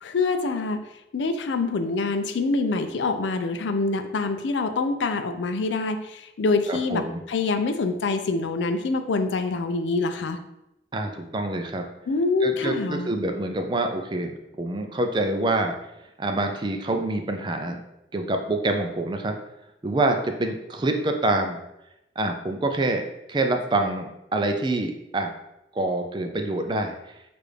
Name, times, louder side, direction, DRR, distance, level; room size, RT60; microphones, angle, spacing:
voice 1, 0.0-0.8 1.1-10.4 12.1-13.1, left 3 dB, 85° left, 8 dB, 0.4 m, -25 dB
voice 2, 6.7-7.2 10.9-11.9 12.4-14.3 14.6-15.8 16.2-17.8 18.1-19.3 19.8-21.6 22.2-23.0 23.3-25.3 25.7-27.0, right 2 dB, 25° right, 5 dB, 0.4 m, -26 dB
6.6 x 2.5 x 3.2 m, 0.88 s
head